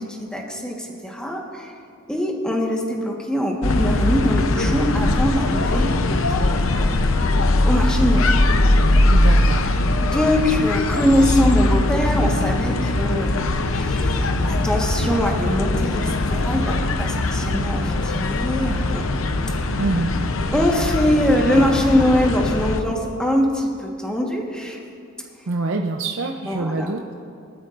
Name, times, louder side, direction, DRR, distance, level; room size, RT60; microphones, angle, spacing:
voice 1, 0.0-1.7 2.1-5.9 6.8-7.2 7.6-8.3 10.0-19.0 20.5-24.8 26.5-27.1, equal, 5° left, -1 dB, 1.4 m, -22 dB
sound 1, 3.6-22.8, left 2 dB, 80° left, 0.7 m, -20 dB
voice 2, 9.1-9.7 19.8-20.1 25.5-27.0, right 2 dB, 70° right, 3 dB, 0.6 m, -25 dB
20.0 x 12.5 x 2.6 m, 2.4 s
head